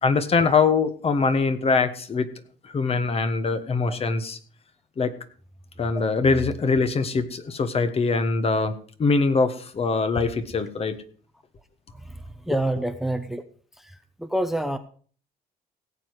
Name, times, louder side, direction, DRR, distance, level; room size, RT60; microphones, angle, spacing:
voice 1, 0.0-2.3 2.6-4.4 5.0-5.1 5.8-8.7 9.0-11.0 12.5-12.6, left 4 dB, 35° left, 10 dB, 1.5 m, -23 dB
voice 2, 12.5-13.4 14.2-14.8, right 1 dB, ahead, 10 dB, 0.8 m, -26 dB
17.0 x 7.7 x 4.9 m, 0.43 s
cardioid pair, 110°, 17 cm